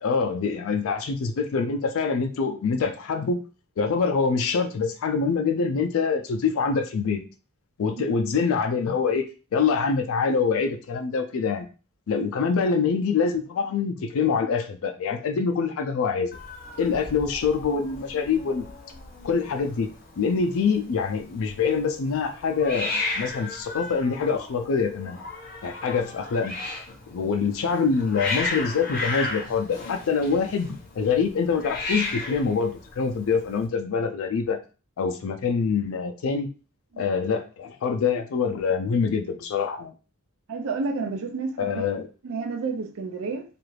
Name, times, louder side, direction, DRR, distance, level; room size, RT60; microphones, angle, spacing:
voice 1, 0.0-3.4 3.8-7.2 7.8-11.7 12.1-16.4 16.8-18.7 19.2-25.2 25.6-26.6 27.1-34.6 35.0-36.5 37.0-39.9 41.6-42.1, left 5 dB, 65° left, 0.4 m, -25 dB
Hiss, 16.3-33.6, left 3 dB, 40° left, 0.8 m, -35 dB
voice 2, 40.5-41.7 42.2-43.4, right 4 dB, 60° right, 0.4 m, -30 dB
2.4 x 2.4 x 3.1 m
head